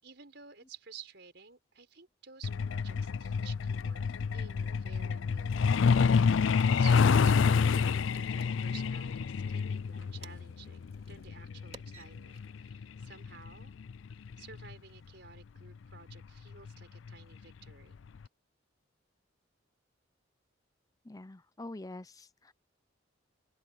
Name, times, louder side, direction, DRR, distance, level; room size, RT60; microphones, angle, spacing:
voice 1, 0.0-4.0 4.3-6.2 6.7-13.7 14.4-18.0, right 6 dB, 60° right, 5.6 m, -53 dB
Truck, 2.4-14.7 16.0-16.1 16.5-16.7 17.1-17.4 17.7-17.8 18.2-18.3, left 5 dB, 85° left, 0.4 m, -28 dB
sound 1, 5.7-12.7, right 4 dB, 35° right, 3.5 m, -59 dB
voice 2, 21.0-22.5, left 2 dB, 20° left, 0.6 m, -45 dB
open air
head